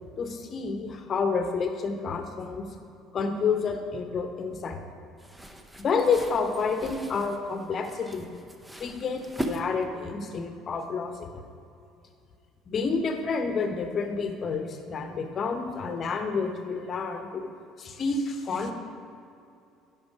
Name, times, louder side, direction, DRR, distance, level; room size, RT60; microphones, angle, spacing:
voice 1, 0.2-2.7 3.1-4.8 5.8-8.3 8.8-11.4 12.7-17.5 17.8-18.7, left 5 dB, 45° left, 6 dB, 1.0 m, -29 dB
sound 1, 5.2-10.2, right 1 dB, 10° right, 0.8 m, -39 dB
10.5 x 6.0 x 4.8 m, 2.6 s
hypercardioid pair, 60°, 0 cm